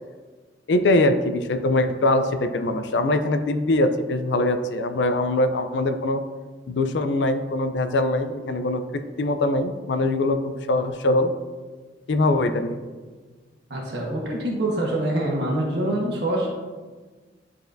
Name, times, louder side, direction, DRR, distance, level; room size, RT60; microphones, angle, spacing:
voice 1, 0.7-6.2 6.7-11.3 12.1-12.8, left 2 dB, 75° left, 8 dB, 0.5 m, -22 dB
voice 2, 13.7-16.5, right 1 dB, 65° right, -2 dB, 1.3 m, -25 dB
10.5 x 4.1 x 2.6 m, 1.4 s
head